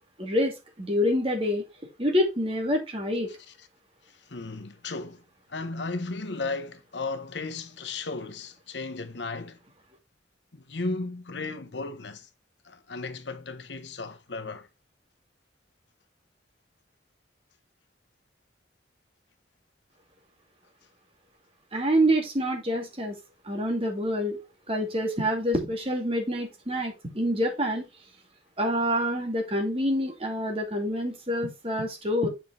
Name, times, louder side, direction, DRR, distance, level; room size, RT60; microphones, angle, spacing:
voice 1, 0.2-1.7 2.0-3.3 21.7-23.2 23.4-24.4 24.7-27.8 28.6-32.3, equal, 30° right, 2.3 m, -27 dB
voice 2, 4.3-5.2 5.5-9.6 10.5-12.3 12.6-14.7, left 3 dB, 75° left, 1.0 m, -35 dB
7.8 x 5.7 x 3.6 m
head